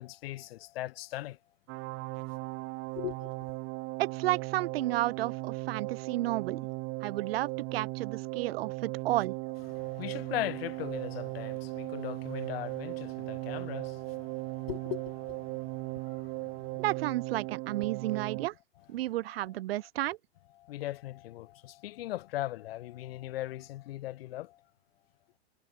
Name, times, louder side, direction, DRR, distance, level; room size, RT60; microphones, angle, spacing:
voice 1, 0.0-1.4 3.0-3.3 9.7-16.9 20.6-24.6, left 15 dB, 70° left, 6.5 m, -39 dB
sound 1, 1.7-18.5, right 26 dB, 45° right, 1.3 m, -37 dB
voice 2, 4.0-6.7 7.0-9.3 16.8-18.5 18.9-20.2, right 16 dB, 70° right, 1.9 m, -32 dB
hypercardioid pair, 115°, 31 cm